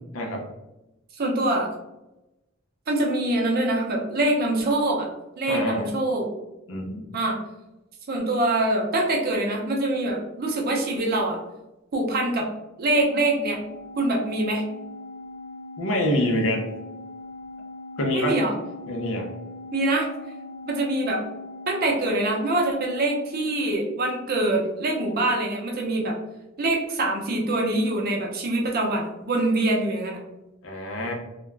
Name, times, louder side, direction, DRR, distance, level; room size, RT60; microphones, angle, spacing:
voice 1, 0.1-0.5 5.5-5.9 6.7-7.0 15.8-16.7 18.0-18.4 18.9-19.3 30.6-31.1, left 1 dB, 75° left, 2 dB, 0.6 m, -26 dB
voice 2, 1.2-1.7 2.9-5.1 5.4-6.3 7.1-7.4 8.1-11.4 11.9-12.5 12.8-13.6 14.0-14.6 18.1-18.5 19.7-20.1 20.6-21.2 21.7-26.2 26.6-30.2, right 2 dB, 50° right, 0 dB, 0.6 m, -24 dB
Organ, 13.0-24.3, left 2 dB, 5° left, 0.6 m, -41 dB
2.4 x 2.2 x 3.1 m, 0.96 s
head